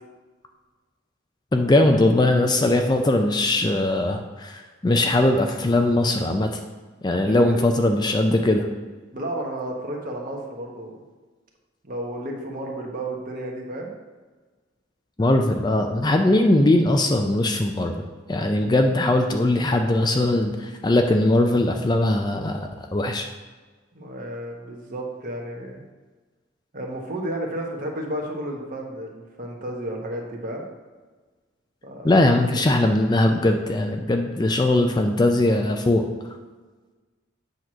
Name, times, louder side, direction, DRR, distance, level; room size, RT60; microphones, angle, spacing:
voice 1, 1.5-6.6 7.0-8.7 15.2-23.3 32.0-36.1, left 1 dB, 20° left, 4 dB, 0.4 m, -20 dB
voice 2, 7.1-7.6 9.1-11.0 11.8-13.9 23.9-25.8 26.7-30.6 31.8-32.6, right 1 dB, 45° right, 0 dB, 1.1 m, -32 dB
8.0 x 3.0 x 6.2 m, 1.3 s
head